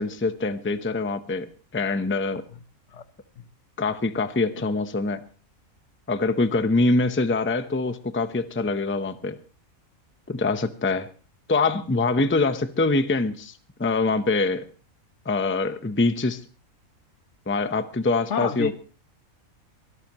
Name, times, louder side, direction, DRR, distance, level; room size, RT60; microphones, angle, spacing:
voice 1, 0.0-1.5 1.7-2.4 3.8-5.2 6.1-9.4 10.3-11.1 11.5-13.5 13.8-14.6 15.3-16.4 17.5-18.7, left 3 dB, 10° left, 0.7 m, -24 dB
voice 2, 18.3-18.7, left 6 dB, 60° left, 1.1 m, -29 dB
24.0 x 13.0 x 3.0 m
omnidirectional pair, 1.4 m